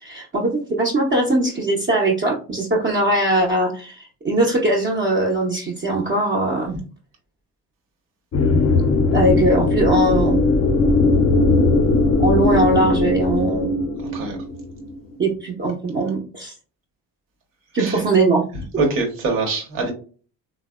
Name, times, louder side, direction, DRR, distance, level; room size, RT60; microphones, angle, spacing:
voice 1, 0.0-6.7 9.1-10.4 12.2-13.8 15.2-16.5 17.7-18.4, right 2 dB, 25° right, -2 dB, 0.6 m, -20 dB
sound 1, 8.3-14.9, left 2 dB, 30° left, 0.5 m, -18 dB
voice 2, 18.8-19.9, right 3 dB, 75° right, 1 dB, 1.0 m, -23 dB
3.3 x 2.1 x 2.2 m, 0.38 s
hypercardioid pair, 45°, 48 cm